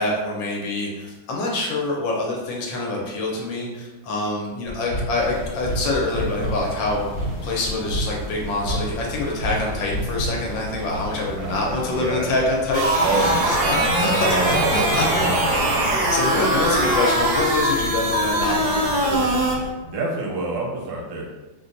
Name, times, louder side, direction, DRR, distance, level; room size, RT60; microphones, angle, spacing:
voice 1, 0.0-7.0 7.4-15.7 16.1-19.3, left 2 dB, 75° left, -2 dB, 1.3 m, -26 dB
sound 1, 4.7-10.5, right 1 dB, 25° left, 0.6 m, -29 dB
sound 2, 5.1-19.7, left 1 dB, 55° left, 1.3 m, -35 dB
voice 2, 10.8-12.3 13.0-15.7 19.8-21.3, right 2 dB, 85° right, -3 dB, 1.6 m, -28 dB
sound 3, 12.7-19.5, right 1 dB, 65° right, 1.0 m, -21 dB
3.9 x 2.2 x 2.5 m, 1.1 s
omnidirectional pair, 2.2 m